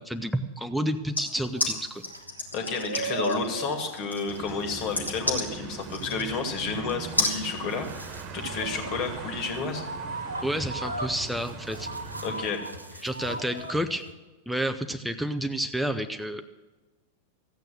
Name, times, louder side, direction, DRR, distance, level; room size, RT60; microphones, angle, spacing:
voice 1, 0.0-2.0 10.4-11.9 13.0-14.0 14.5-16.4, right 1 dB, ahead, 9 dB, 0.7 m, -30 dB
sound 1, 1.2-6.7 7.2-7.4, left 2 dB, 80° left, 2.1 m, -30 dB
sound 2, 1.3-14.1, right 2 dB, 85° right, 1.0 m, -38 dB
voice 2, 2.5-9.8 12.2-12.6 12.9-13.0, left 4 dB, 40° left, 5 dB, 2.5 m, -31 dB
sound 3, 4.3-12.4, right 4 dB, 40° right, 1.5 m, -40 dB
14.5 x 9.0 x 7.6 m, 1.2 s
figure-of-eight pair, 90°, 0 cm